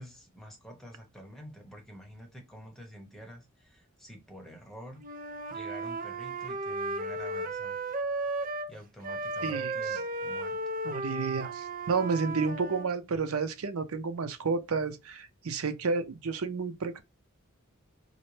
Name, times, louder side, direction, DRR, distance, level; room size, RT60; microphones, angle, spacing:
voice 1, 0.0-5.0 5.5-7.8 8.7-10.6, equal, ahead, 0.9 m, -48 dB
Wind instrument woodwind instrument, 5.0-8.7 9.0-12.9, right 2 dB, 40° right, 0.4 m, -34 dB
voice 2, 9.4-9.7 10.8-17.0, right 4 dB, 90° right, 0.6 m, -31 dB
4.0 x 2.2 x 3.1 m
head